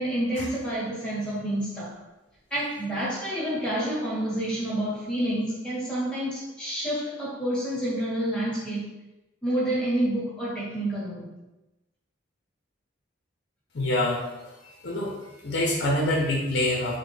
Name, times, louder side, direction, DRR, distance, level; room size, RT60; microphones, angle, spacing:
voice 1, 0.0-1.9 2.5-8.9 9.4-11.3, right 1 dB, 5° left, -8 dB, 1.1 m, -28 dB
voice 2, 13.7-14.2 14.6-15.1 15.4-17.0, left 1 dB, 60° left, -3 dB, 0.6 m, -25 dB
3.7 x 2.1 x 3.3 m, 0.99 s
head